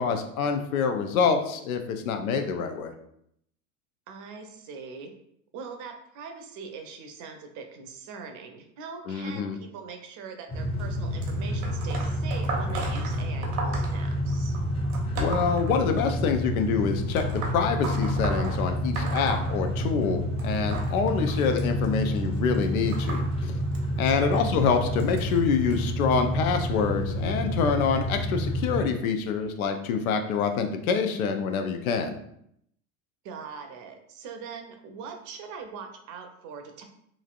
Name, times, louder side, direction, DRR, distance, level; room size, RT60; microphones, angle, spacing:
voice 1, 0.0-2.9 9.1-9.6 15.2-23.5 24.0-32.2, left 6 dB, 85° left, 6 dB, 0.6 m, -26 dB
voice 2, 4.1-5.1 5.5-14.6 24.0-24.4 33.2-36.9, right 5 dB, 45° right, 5 dB, 0.6 m, -42 dB
sound 1, 10.5-28.9, equal, 15° left, 0.5 m, -29 dB
sound 2, 11.2-16.3 17.1-20.1 20.4-25.8 26.5-26.8 27.8-27.9 28.8-28.9 29.6-29.7, right 2 dB, 85° right, 0.9 m, -36 dB
3.1 x 2.6 x 2.4 m, 0.72 s
hypercardioid pair, 95°, 41 cm